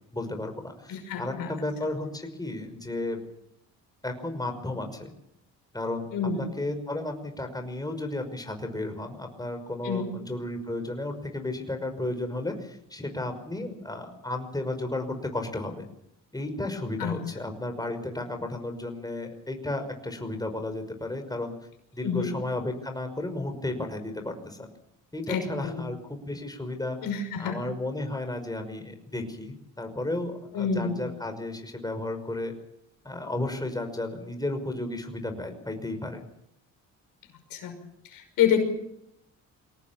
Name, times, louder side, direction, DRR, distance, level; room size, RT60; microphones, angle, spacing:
voice 1, 0.1-3.2 4.0-5.1 5.7-6.1 6.4-15.9 16.3-21.5 21.9-24.7 25.1-27.0 27.4-32.5 33.0-36.2, left 2 dB, 10° left, 6 dB, 5.7 m, -33 dB
voice 2, 0.9-1.5 6.1-6.4 9.8-10.1 17.0-17.2 22.0-22.3 25.3-25.8 27.0-27.6 30.5-31.0 37.5-37.7 38.1-38.6, left 7 dB, 80° left, 6 dB, 5.8 m, -27 dB
23.0 x 18.0 x 7.4 m, 0.78 s
supercardioid pair, 70°, 34 cm